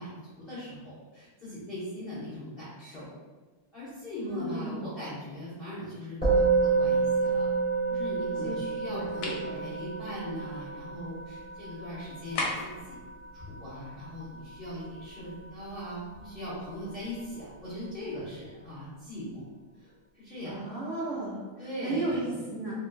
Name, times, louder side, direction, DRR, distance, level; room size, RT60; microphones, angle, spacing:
voice 1, 0.0-3.1 3.7-7.5 7.9-13.0 13.3-19.4 19.7-20.7 21.6-22.4, equal, 45° left, -12 dB, 0.7 m, -40 dB
voice 2, 4.2-4.8 8.4-8.5 8.9-9.6 20.4-21.4 21.8-22.7, right 2 dB, 80° right, -10 dB, 0.6 m, -34 dB
Musical instrument, 6.2-15.7, right 4 dB, 15° left, 0.3 m, -30 dB
sound 1, 9.2-9.5 12.3-12.8, left 2 dB, 75° left, 1.4 m, -32 dB
3.5 x 2.5 x 2.2 m, 1.3 s
omnidirectional pair, 2.3 m